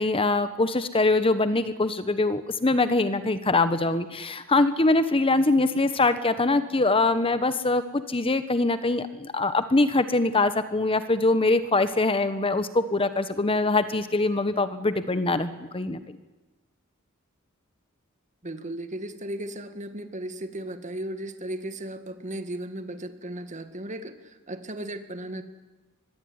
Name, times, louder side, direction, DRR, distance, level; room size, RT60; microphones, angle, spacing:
voice 1, 0.0-16.0, left 2 dB, 25° left, 12 dB, 1.1 m, -23 dB
voice 2, 18.4-25.4, right 1 dB, 35° right, 9 dB, 2.0 m, -36 dB
24.5 x 20.5 x 9.6 m, 1.2 s
head